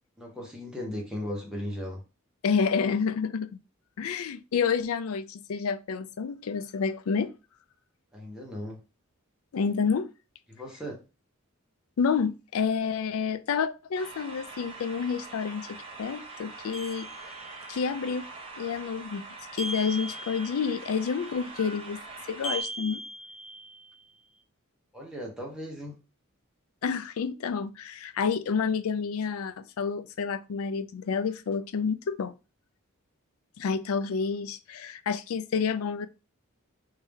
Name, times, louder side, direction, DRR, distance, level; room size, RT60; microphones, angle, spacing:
voice 1, 0.2-2.0 8.1-8.8 10.5-11.0 24.9-26.0, left 1 dB, 5° right, 1.1 m, -37 dB
voice 2, 2.4-3.6 4.0-7.3 9.5-10.1 12.0-17.1 17.7-18.2 18.6-19.2 19.5-22.0 22.3-23.0 26.8-32.3 33.6-36.1, left 6 dB, 80° left, 0.4 m, -29 dB
sound 1, 13.9-22.6, right 3 dB, 25° right, 0.7 m, -43 dB
sound 2, 16.7-17.7 19.6-20.8 22.4-23.9, right 1 dB, 30° left, 0.7 m, -38 dB
3.3 x 2.7 x 3.5 m
head